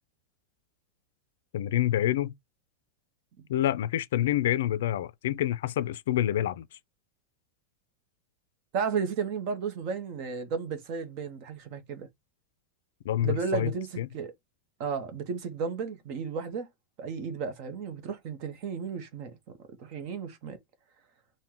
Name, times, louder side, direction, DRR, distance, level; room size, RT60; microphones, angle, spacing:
voice 1, 1.5-2.3 3.5-6.7 13.0-13.7 14.0-14.1, left 12 dB, 70° left, 0.4 m, -27 dB
voice 2, 8.7-12.1 13.2-14.3 14.8-16.7 17.0-19.3 19.8-20.6, right 6 dB, 35° right, 0.7 m, -33 dB
4.4 x 2.1 x 3.7 m
supercardioid pair, 180°, 0 cm